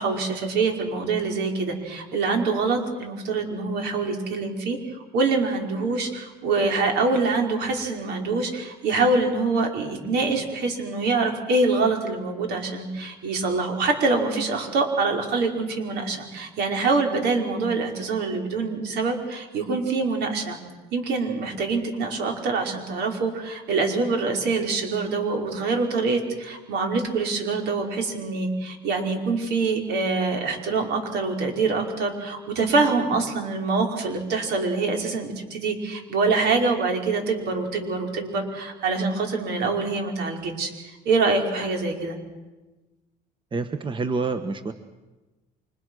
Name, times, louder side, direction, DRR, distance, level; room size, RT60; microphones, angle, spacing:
voice 1, 0.0-4.8 5.1-20.6 20.9-40.7 41.1-42.2, right 3 dB, 75° right, 3 dB, 5.4 m, -25 dB
voice 2, 43.5-44.7, right 4 dB, 30° right, 9 dB, 1.4 m, -27 dB
30.0 x 25.0 x 6.5 m, 1.2 s
cardioid pair, 110°, 17 cm